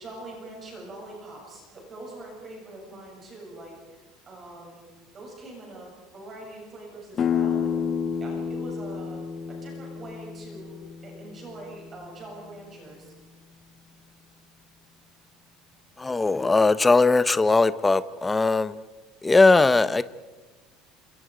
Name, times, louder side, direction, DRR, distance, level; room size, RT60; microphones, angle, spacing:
voice 1, 0.0-4.9 5.1-7.8 8.2-10.8 11.0-13.1, right 2 dB, 25° right, -1 dB, 7.5 m, -43 dB
sound 1, 7.2-12.7, left 7 dB, 30° left, 1.1 m, -31 dB
voice 2, 16.0-18.8 19.2-20.0, left 3 dB, 10° left, 15 dB, 0.7 m, -19 dB
29.0 x 27.0 x 5.0 m, 1.2 s
cardioid pair, 165°, 0 cm